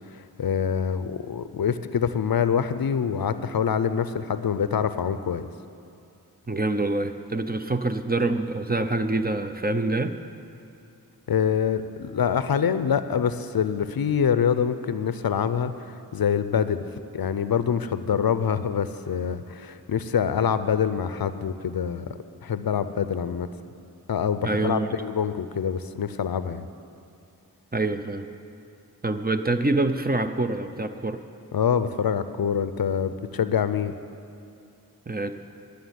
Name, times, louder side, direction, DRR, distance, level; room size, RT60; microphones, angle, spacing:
voice 1, 0.1-5.5 11.3-16.8 17.1-22.1 22.4-23.5 24.1-26.7 31.5-33.9, left 7 dB, 65° left, 12 dB, 0.6 m, -25 dB
voice 2, 6.5-10.2 24.4-24.9 27.7-28.3 29.0-31.2 35.1-35.3, right 2 dB, 25° right, 8 dB, 0.7 m, -26 dB
11.5 x 6.8 x 9.5 m, 2.6 s
cardioid pair, 40°, 38 cm